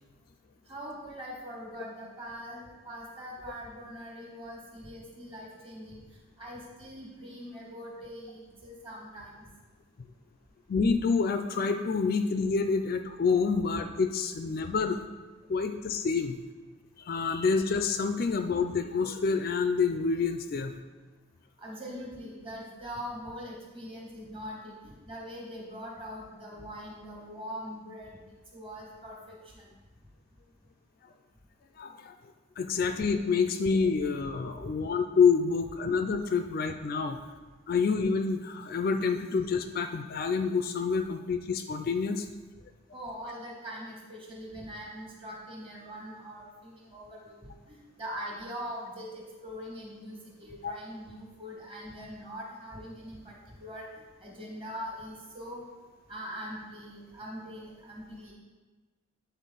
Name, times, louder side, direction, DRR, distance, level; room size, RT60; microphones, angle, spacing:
voice 1, 0.7-6.0 6.4-9.4 21.6-28.2 28.5-29.7 34.6-34.7 42.9-53.3 53.6-53.9 54.2-55.6 56.1-58.3, equal, 25° right, -3 dB, 1.5 m, -42 dB
voice 2, 10.7-15.0 15.5-16.4 17.1-20.7 31.8-32.1 32.6-37.2 37.7-42.3 50.6-50.7, left 5 dB, 45° left, 7 dB, 0.3 m, -27 dB
9.2 x 4.0 x 3.9 m, 1.3 s
head